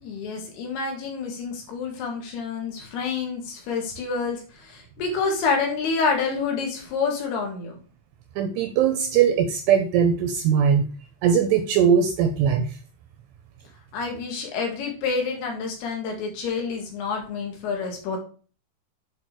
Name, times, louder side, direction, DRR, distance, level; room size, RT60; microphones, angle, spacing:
voice 1, 0.0-7.8 13.9-18.2, left 5 dB, 65° left, 2 dB, 3.0 m, -28 dB
voice 2, 8.4-10.8 11.2-12.7, right 7 dB, 85° right, 6 dB, 2.5 m, -20 dB
8.3 x 4.2 x 4.6 m, 0.38 s
omnidirectional pair, 5.5 m